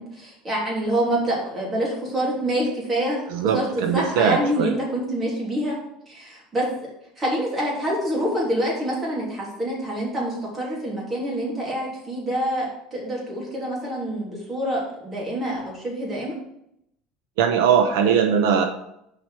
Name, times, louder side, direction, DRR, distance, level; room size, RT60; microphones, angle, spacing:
voice 1, 0.0-5.8 6.1-6.7 7.2-16.3, right 1 dB, 20° right, -4 dB, 3.2 m, -26 dB
voice 2, 3.3-4.7 17.4-18.6, right 7 dB, 90° right, 5 dB, 0.9 m, -20 dB
6.5 x 5.1 x 6.5 m, 0.77 s
cardioid pair, 155°, 0 cm